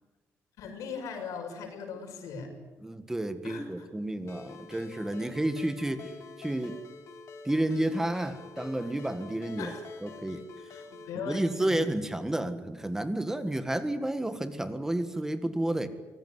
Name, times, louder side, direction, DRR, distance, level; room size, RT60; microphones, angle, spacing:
voice 1, 0.6-2.5 3.4-3.9 9.6-9.9 10.7-11.8, left 5 dB, 90° left, 5 dB, 6.3 m, -39 dB
voice 2, 2.8-6.1 6.4-6.8 7.4-9.7 10.0-10.4 11.3-15.9, right 1 dB, 10° right, 10 dB, 1.6 m, -31 dB
Ringtone, 4.3-11.1, left 4 dB, 60° left, 3.3 m, -47 dB
24.5 x 20.0 x 9.6 m, 1.2 s
cardioid pair, 150°, 5 cm